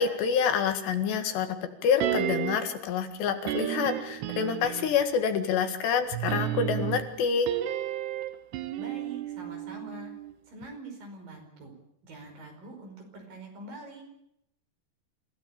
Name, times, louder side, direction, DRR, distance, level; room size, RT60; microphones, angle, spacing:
voice 1, 0.0-1.6 1.8-7.5, left 7 dB, 85° left, 7 dB, 4.1 m, -27 dB
sound 1, 2.0-2.8 3.5-5.1 6.1-10.3 10.6-10.7, right 12 dB, 85° right, 3.2 m, -32 dB
voice 2, 8.8-10.1 10.5-11.7 12.0-14.2, right 2 dB, 55° right, 3 dB, 6.8 m, -44 dB
28.0 x 16.0 x 8.8 m, 0.79 s
omnidirectional pair, 4.8 m